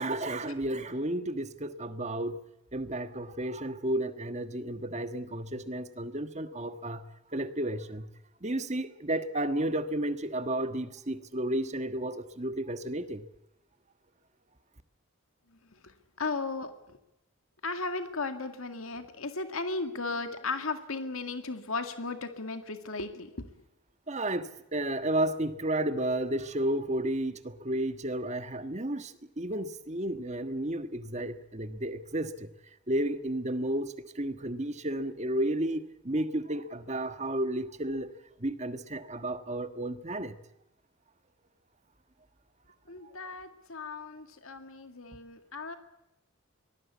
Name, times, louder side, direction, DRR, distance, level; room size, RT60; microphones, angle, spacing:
voice 1, 0.0-2.3 2.7-7.0 7.3-8.1 8.4-13.2 24.1-29.1 29.4-32.3 32.9-33.9 34.2-38.1 38.4-40.3, right 1 dB, 35° right, 1.5 m, -32 dB
voice 2, 16.2-16.7 17.6-23.5 42.9-45.8, left 3 dB, 85° left, 2.1 m, -35 dB
24.5 x 19.5 x 8.4 m
head